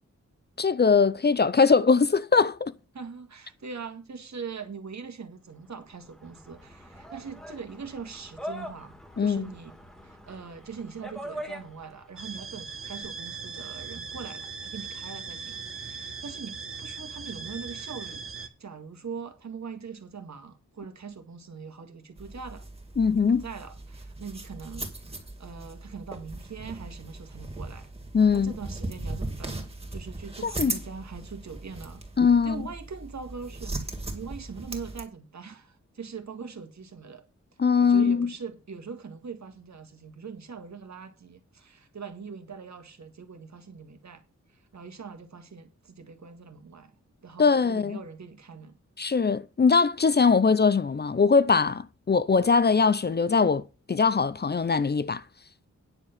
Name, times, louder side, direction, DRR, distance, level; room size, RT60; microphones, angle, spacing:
voice 1, 0.6-2.7 9.2-9.5 23.0-23.4 28.1-28.5 30.4-30.8 32.2-32.6 37.6-38.3 47.4-48.0 49.0-55.2, left 5 dB, 35° left, 0.5 m, -21 dB
voice 2, 2.9-9.7 10.0-22.7 23.3-27.9 28.3-32.0 32.4-37.2 37.8-44.2 44.5-46.9 47.2-48.7, right 5 dB, 70° right, 1.8 m, -42 dB
sound 1, 5.7-12.1, equal, ahead, 1.8 m, -42 dB
sound 2, 12.2-18.5, right 5 dB, 45° right, 1.1 m, -39 dB
sound 3, 22.2-35.0, right 2 dB, 20° right, 2.3 m, -38 dB
9.8 x 6.9 x 5.8 m
wide cardioid pair, 125°, 29 cm